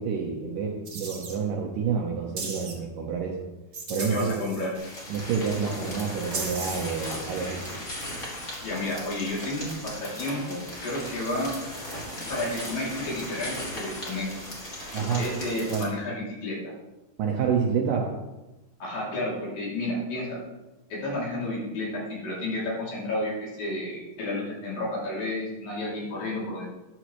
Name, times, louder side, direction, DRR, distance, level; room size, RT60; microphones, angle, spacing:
voice 1, 0.0-3.4 3.9-4.5 5.1-7.6 14.9-15.2 15.7-15.9 17.2-18.1, right 6 dB, 70° right, 0 dB, 2.3 m, -28 dB
sound 1, 0.8-1.3 2.4-2.7 3.7-4.9 6.3-6.9, right 4 dB, 50° right, 1.2 m, -36 dB
voice 2, 3.9-4.7 8.6-11.5 12.3-14.3 15.2-16.7 18.8-20.4 20.9-26.7, left 1 dB, 60° left, -5 dB, 4.5 m, -31 dB
sound 2, 4.7-15.8, left 1 dB, 20° left, 2.2 m, -37 dB
13.0 x 10.5 x 3.2 m, 1.1 s
omnidirectional pair, 4.8 m